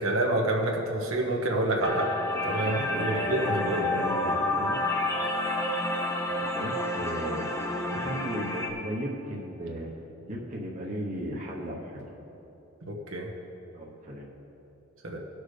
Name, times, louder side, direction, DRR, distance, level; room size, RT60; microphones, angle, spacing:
voice 1, 0.0-2.1 2.4-3.9 12.9-13.3 15.0-15.2, right 1 dB, 80° right, 0 dB, 1.3 m, -28 dB
sound 1, 1.8-8.7, left 2 dB, 15° left, 0.6 m, -29 dB
voice 2, 2.6-4.8 6.2-7.5 7.9-9.9 10.3-12.0 13.7-14.3, right 1 dB, 35° right, -3 dB, 1.0 m, -36 dB
18.0 x 6.3 x 3.3 m, 2.9 s
head